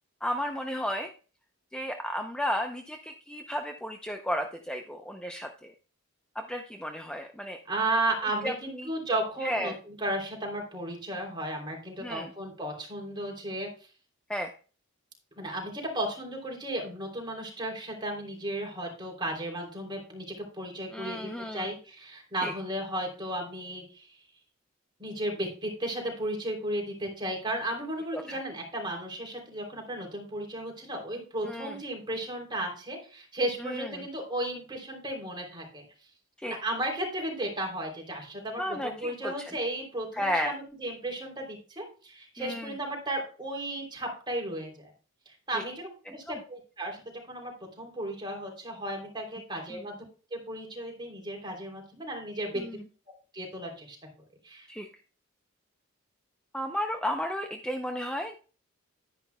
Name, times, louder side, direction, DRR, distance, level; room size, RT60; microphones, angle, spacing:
voice 1, 0.2-1.1 1.7-5.7 6.4-7.6 8.4-8.5 8.8-8.9 9.4-9.7 12.0-12.3 14.3-14.5 20.9-21.7 22.4-22.5 28.1-28.4 31.5-31.8 33.6-34.0 36.4-36.6 38.6-39.5 40.1-40.5 42.4-42.7 45.5-45.6 46.1-46.4 49.7-49.8 52.5-52.8 54.7-54.9 56.5-58.4, equal, 5° left, 4 dB, 0.6 m, -33 dB
voice 2, 7.7-13.9 15.4-24.1 25.0-35.8 36.4-44.9 45.2-47.0 47.3-50.0 50.3-52.6 53.3-54.0 54.4-54.7, right 1 dB, 20° right, 1 dB, 3.1 m, -34 dB
11.5 x 10.0 x 2.3 m, 0.37 s
head